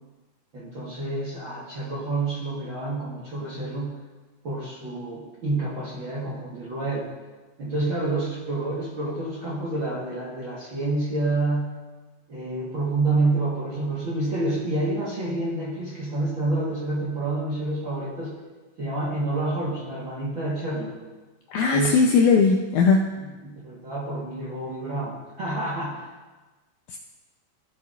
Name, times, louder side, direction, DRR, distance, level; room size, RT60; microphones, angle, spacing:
voice 1, 0.5-4.0 4.4-7.1 7.6-11.7 12.3-18.3 18.8-20.9 21.7-22.1 23.2-26.0, right 2 dB, 50° right, -6 dB, 1.6 m, -28 dB
voice 2, 21.5-23.1 26.9-27.0, left 5 dB, 90° left, 3 dB, 1.7 m, -19 dB
15.0 x 7.2 x 2.5 m, 1.2 s
omnidirectional pair, 4.1 m